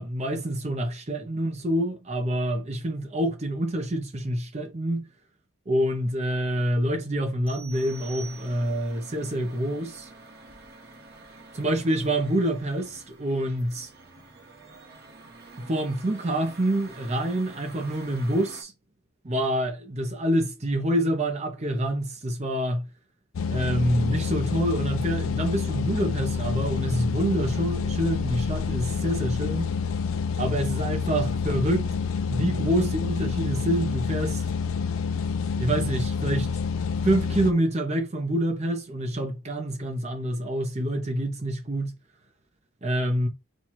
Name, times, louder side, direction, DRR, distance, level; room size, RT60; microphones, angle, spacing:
voice 1, 0.0-5.0 5.7-10.1 11.5-13.9 15.6-18.7 19.2-22.9 23.5-29.7 30.4-32.0 32.3-34.4 35.6-36.5 37.0-41.9 42.8-43.3, right 1 dB, 30° right, 0.6 m, -27 dB
sound 1, 7.5-9.0, right 5 dB, 5° left, 0.9 m, -46 dB
sound 2, 7.7-18.6, right 2 dB, 50° right, 1.2 m, -48 dB
faulty pumper, 23.3-37.5, left 6 dB, 70° left, 0.4 m, -28 dB
4.3 x 2.3 x 4.4 m
head